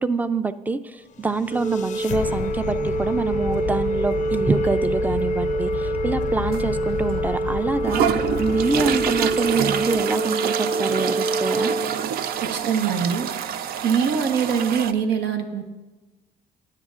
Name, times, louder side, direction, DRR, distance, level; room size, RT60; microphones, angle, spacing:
voice 1, 0.0-11.7, right 3 dB, 10° right, 13 dB, 0.4 m, -26 dB
sound 1, 1.1-10.2, left 9 dB, 45° left, 0.5 m, -32 dB
Organ, 1.5-12.6, right 2 dB, 40° right, 1.5 m, -26 dB
sound 2, 6.5-6.6 7.2-7.3 7.9-14.9, right 8 dB, 65° right, 0.5 m, -26 dB
voice 2, 12.4-13.3 13.8-15.6, right 7 dB, 85° right, 5 dB, 1.2 m, -23 dB
18.0 x 9.8 x 2.5 m, 1.2 s
cardioid pair, 110°, 17 cm